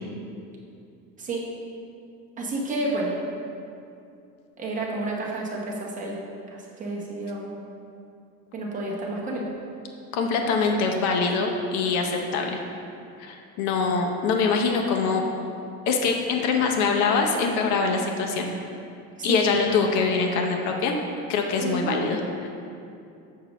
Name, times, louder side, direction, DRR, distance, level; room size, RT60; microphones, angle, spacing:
voice 1, 1.2-1.5 2.4-3.2 4.6-6.2 6.5-7.5 8.5-9.5 19.2-19.6 21.6-22.1, right 2 dB, 25° right, -3 dB, 1.0 m, -30 dB
voice 2, 10.1-12.6 13.2-15.2 15.9-18.5 19.2-21.0 21.3-22.5, left 4 dB, 55° left, 2 dB, 0.7 m, -24 dB
6.7 x 6.5 x 3.0 m, 2.6 s
cardioid pair, 155°, 34 cm